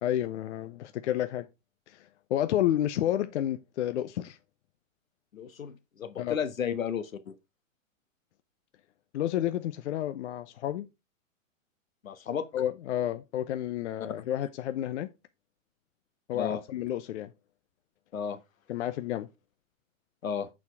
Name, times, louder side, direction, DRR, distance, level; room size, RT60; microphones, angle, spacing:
voice 1, 0.0-1.5 1.9-4.4 6.2-6.4 9.1-10.9 12.5-15.1 16.3-17.3 18.7-19.3, left 12 dB, 60° left, 0.8 m, -30 dB
voice 2, 5.3-7.3 12.0-12.5 16.3-16.6 18.1-18.4 20.2-20.5, left 7 dB, 80° left, 1.3 m, -33 dB
8.4 x 4.5 x 4.5 m
hypercardioid pair, 120°, 40 cm